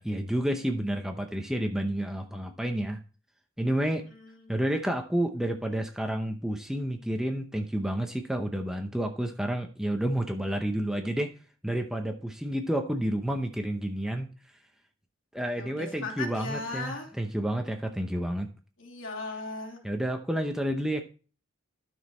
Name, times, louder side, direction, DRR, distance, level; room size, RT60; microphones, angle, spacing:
voice 1, 0.0-3.0 3.6-4.0 4.5-11.3 11.6-14.6 15.3-18.5 19.8-21.0, right 1 dB, 5° right, 4 dB, 0.7 m, -30 dB
voice 2, 4.1-4.5 15.6-17.1 18.8-19.8, left 3 dB, 70° left, 1 dB, 2.8 m, -37 dB
12.5 x 6.3 x 4.3 m, 0.38 s
head